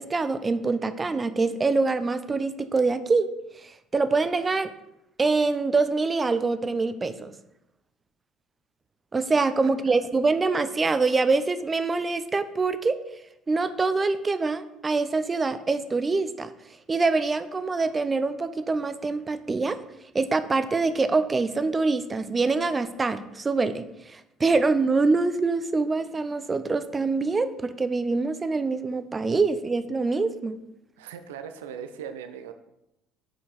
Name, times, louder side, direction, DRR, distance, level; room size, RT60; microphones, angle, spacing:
voice 1, 0.0-3.3 3.6-4.7 5.2-7.3 9.1-13.0 13.5-16.5 16.9-19.8 20.1-30.6, right 3 dB, 25° right, 12 dB, 0.5 m, -25 dB
voice 2, 31.0-32.5, right 8 dB, 85° right, 8 dB, 0.4 m, -39 dB
6.0 x 4.7 x 4.2 m, 0.85 s
hypercardioid pair, 70°, 0 cm